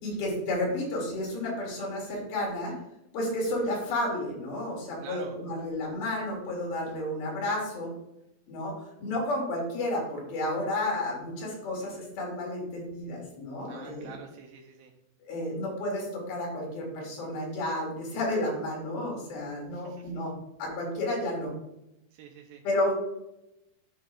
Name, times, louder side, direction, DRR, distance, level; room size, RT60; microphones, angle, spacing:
voice 1, 0.0-2.8 3.1-7.9 8.5-14.1 15.2-21.5 22.6-22.9, left 1 dB, 85° left, -2 dB, 4.1 m, -31 dB
voice 2, 5.0-5.4 13.7-14.9 19.7-20.1 22.1-22.6, right 7 dB, 85° right, 2 dB, 2.4 m, -47 dB
11.0 x 5.6 x 2.4 m, 0.86 s
omnidirectional pair, 4.2 m